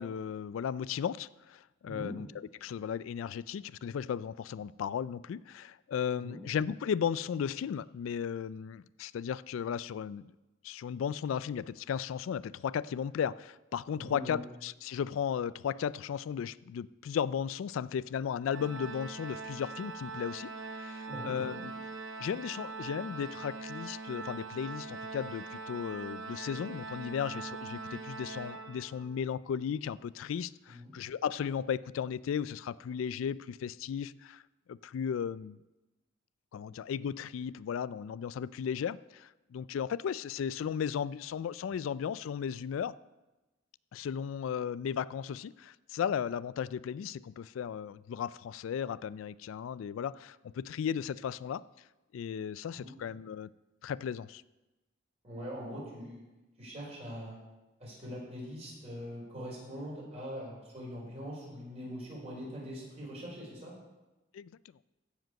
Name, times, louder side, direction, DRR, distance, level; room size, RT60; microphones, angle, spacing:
voice 1, 0.0-2.3 2.6-10.3 10.6-21.7 22.2-34.4 34.7-35.6 36.5-43.0 43.9-51.6 52.1-53.5 53.8-54.4 64.3-64.5, left 8 dB, 80° left, 18 dB, 0.3 m, -35 dB
voice 2, 13.9-14.4 21.1-21.6 30.7-30.9 52.7-52.9 55.2-56.2 56.6-57.4 57.8-63.7, equal, 35° right, -5 dB, 4.7 m, -42 dB
Organ, 18.5-29.3, right 3 dB, 75° right, 0.9 m, -42 dB
15.0 x 5.2 x 6.5 m, 1.0 s
head